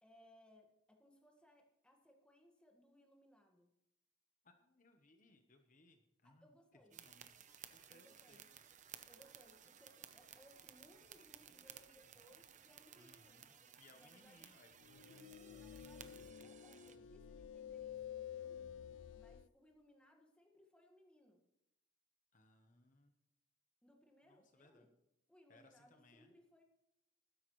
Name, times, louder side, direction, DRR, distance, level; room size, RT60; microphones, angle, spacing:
voice 1, 0.0-3.7 6.2-7.0 7.9-8.5 9.0-14.5 15.0-16.2 16.4-18.7 19.1-21.4 23.8-24.9 25.3-26.6, equal, 5° left, 2 dB, 1.6 m, -67 dB
voice 2, 4.4-6.5 6.9-7.3 7.7-8.4 13.0-14.7 22.3-23.1 24.3-24.9 25.5-26.3, left 2 dB, 45° left, 6 dB, 1.0 m, -67 dB
sound 1, 6.9-17.0, right 9 dB, 40° right, 0.8 m, -59 dB
sound 2, 14.8-19.5, left 9 dB, 80° left, 0.4 m, -51 dB
20.0 x 10.5 x 3.2 m, 0.83 s
head